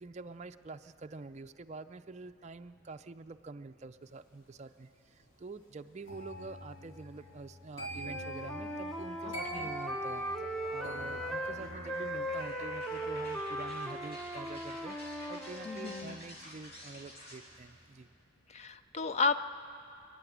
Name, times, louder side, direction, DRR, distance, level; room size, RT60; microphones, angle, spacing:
voice 1, 0.0-10.2 10.7-18.1, right 3 dB, 30° right, 8 dB, 0.4 m, -47 dB
sound 1, 6.1-17.0 17.3-17.7, equal, 65° left, 3.8 m, -47 dB
Wind instrument woodwind instrument, 8.0-11.6 11.9-16.1, right 1 dB, ahead, 0.8 m, -38 dB
voice 2, 9.2-9.7 15.7-16.2 18.5-19.4, left 4 dB, 30° left, 11 dB, 0.4 m, -33 dB
sound 2, 10.4-17.4, equal, 45° left, 4.3 m, -50 dB
26.5 x 12.0 x 9.2 m, 2.7 s
head